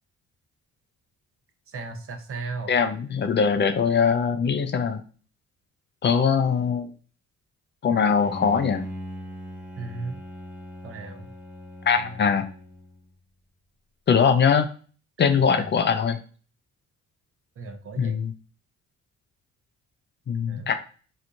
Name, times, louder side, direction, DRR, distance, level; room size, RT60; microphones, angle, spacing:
voice 1, 1.7-2.8 9.8-10.2 10.8-11.3 12.0-12.3 15.5-15.7 17.6-18.2 20.5-20.7, right 3 dB, 45° right, 5 dB, 0.7 m, -36 dB
voice 2, 2.7-5.0 6.0-6.9 7.8-8.8 11.9-12.4 14.1-14.7 15.2-16.2 18.0-18.3 20.3-20.7, left 6 dB, 35° left, 9 dB, 0.5 m, -21 dB
Bowed string instrument, 8.2-13.2, equal, 5° right, 0.8 m, -40 dB
4.4 x 2.4 x 2.6 m, 0.39 s
cardioid pair, 90°, 30 cm